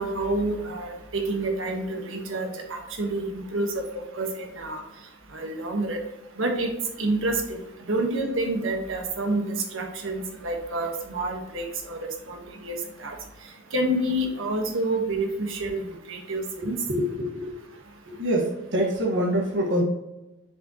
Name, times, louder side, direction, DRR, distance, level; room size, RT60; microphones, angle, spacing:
voice 1, 0.0-4.8 5.3-6.0 6.4-6.7 7.0-7.6 7.9-12.4 12.6-13.2 13.7-15.8 16.1-16.8, right 2 dB, 85° right, 3 dB, 1.3 m, -28 dB
voice 2, 16.6-17.5 18.1-19.8, equal, 65° right, -1 dB, 1.5 m, -26 dB
6.7 x 5.1 x 2.9 m, 0.97 s
head